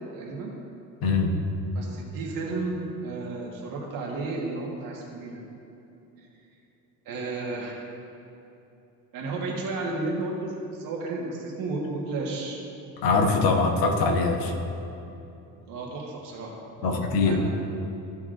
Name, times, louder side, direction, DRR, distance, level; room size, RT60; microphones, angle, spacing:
voice 1, 0.1-0.5 1.7-5.4 7.0-7.8 9.1-12.6 15.7-17.5, right 3 dB, 60° right, -3 dB, 1.5 m, -33 dB
voice 2, 1.0-1.3 13.0-14.5 16.8-17.4, left 3 dB, 70° left, 3 dB, 1.1 m, -22 dB
14.0 x 5.7 x 2.5 m, 2.9 s
cardioid pair, 155°, 37 cm